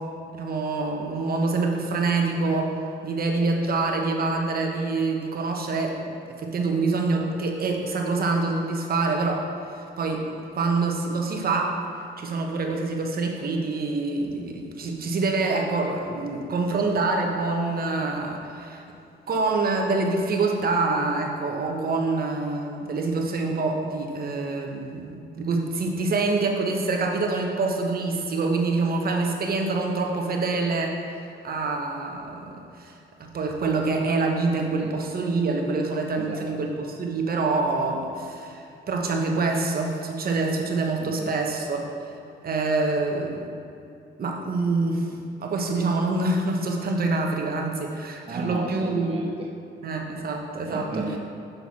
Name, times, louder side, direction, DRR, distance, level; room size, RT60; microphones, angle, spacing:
voice 1, 0.4-2.8 3.0-9.5 9.8-10.2 10.5-11.8 12.2-18.8 19.3-31.0 31.4-32.9 33.3-42.1 42.4-43.5 44.2-49.1 49.8-51.1, right 3 dB, 50° right, 2 dB, 1.0 m, -26 dB
voice 2, 36.2-36.5 41.0-41.3 48.3-49.5 50.6-51.2, right 3 dB, 30° right, 0 dB, 0.6 m, -35 dB
6.8 x 5.9 x 4.2 m, 2.7 s
cardioid pair, 90°, 20 cm